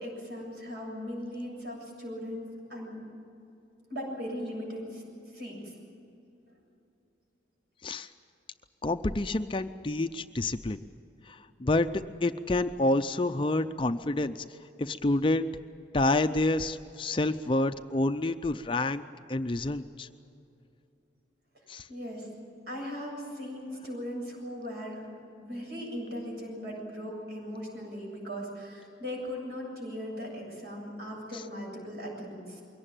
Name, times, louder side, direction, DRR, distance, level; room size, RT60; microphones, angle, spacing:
voice 1, 0.0-3.0 3.9-5.0 5.3-5.7 21.9-22.3 22.7-25.1 25.4-32.6, equal, 60° right, -1 dB, 7.7 m, -38 dB
voice 2, 8.8-10.8 11.2-14.4 14.8-15.5 15.9-19.0 19.3-20.1 21.7-21.9, left 2 dB, 25° left, 9 dB, 0.5 m, -28 dB
22.5 x 18.0 x 9.0 m, 2.7 s
head